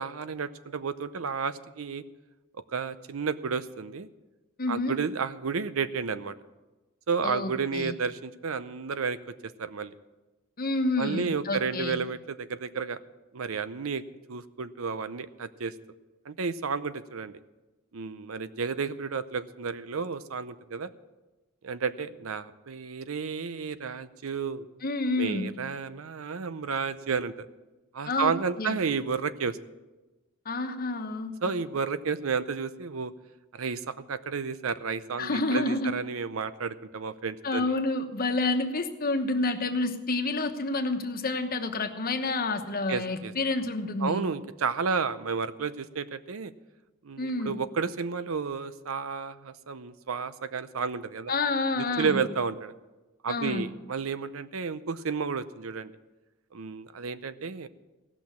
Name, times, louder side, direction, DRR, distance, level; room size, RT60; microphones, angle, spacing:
voice 1, 0.0-2.0 2.7-4.1 4.7-6.3 7.1-9.9 11.0-13.0 13.3-14.0 14.3-15.7 16.3-17.4 17.9-20.9 21.6-24.7 25.2-27.5 27.9-29.6 31.4-33.1 33.5-37.7 42.9-43.3 44.0-46.5 47.0-51.3 51.8-52.7 53.2-55.9 56.5-57.7, right 5 dB, 75° right, 14 dB, 0.6 m, -32 dB
voice 2, 4.6-4.9 7.2-8.0 10.6-12.0 24.8-25.5 28.1-28.3 28.6-28.8 30.4-31.5 35.2-35.9 37.4-44.2 47.2-47.6 51.3-52.2 53.3-53.7, left 2 dB, 45° left, 6 dB, 1.1 m, -29 dB
17.0 x 6.2 x 8.5 m, 1.1 s
head